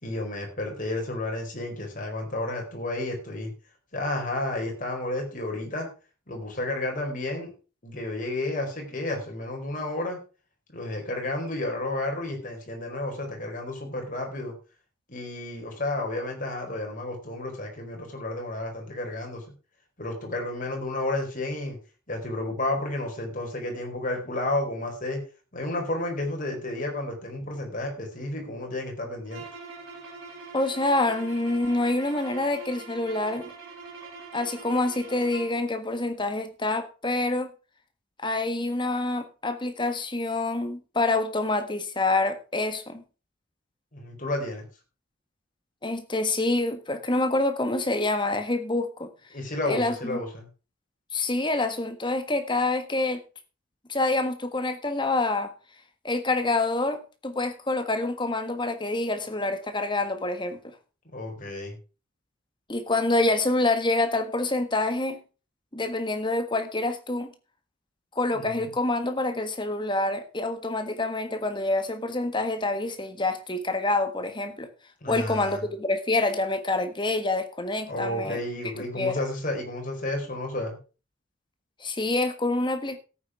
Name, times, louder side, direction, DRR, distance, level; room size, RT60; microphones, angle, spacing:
voice 1, 0.0-3.5 3.9-5.9 6.3-7.5 7.8-10.2 10.7-14.5 15.1-19.4 20.0-21.8 22.1-25.2 25.5-29.4 43.9-44.6 49.3-50.5 61.1-61.8 68.3-68.6 75.0-75.6 77.9-80.8, left 2 dB, 40° left, 4.3 m, -31 dB
sound 1, 29.3-35.6, right 4 dB, 80° right, 4.2 m, -43 dB
voice 2, 30.5-33.5 34.3-37.5 38.2-43.0 45.8-49.1 49.7-50.2 51.1-53.2 53.9-55.5 56.0-60.6 62.7-65.2 65.7-67.3 68.1-74.7 75.1-78.4 79.0-79.2 81.8-83.0, left 2 dB, 25° left, 1.5 m, -27 dB
13.5 x 9.1 x 4.9 m
head